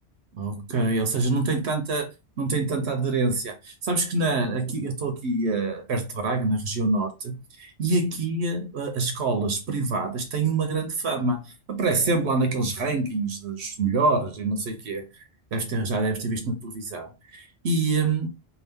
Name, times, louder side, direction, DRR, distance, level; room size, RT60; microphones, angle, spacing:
voice 1, 0.3-2.1 2.4-15.2 15.5-18.3, right 3 dB, 75° right, 0.9 m, -26 dB
2.7 x 2.3 x 3.5 m
omnidirectional pair, 1.1 m